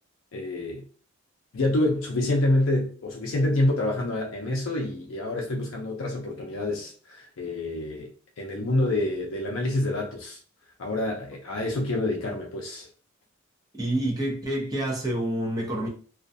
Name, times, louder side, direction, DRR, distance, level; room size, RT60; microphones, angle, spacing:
voice 1, 0.3-0.8 1.5-10.4 10.8-12.9, left 1 dB, 60° left, 0.5 m, -27 dB
voice 2, 13.8-15.9, right 1 dB, 15° right, 0.7 m, -28 dB
2.4 x 2.2 x 2.5 m
head